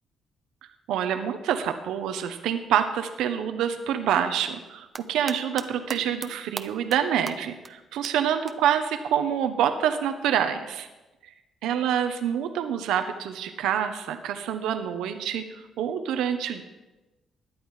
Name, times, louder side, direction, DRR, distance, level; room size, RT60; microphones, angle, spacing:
voice 1, 0.9-10.9 11.6-16.6, right 9 dB, 90° right, 8 dB, 1.0 m, -27 dB
sound 1, 4.7-5.7 5.9-6.3 6.6-7.0 7.3-7.4 7.6-7.7 8.0-8.1 8.5-8.6 10.1-10.2, right 3 dB, 30° right, 0.8 m, -36 dB
17.0 x 10.5 x 4.9 m, 1.1 s
cardioid pair, 90°, 0 cm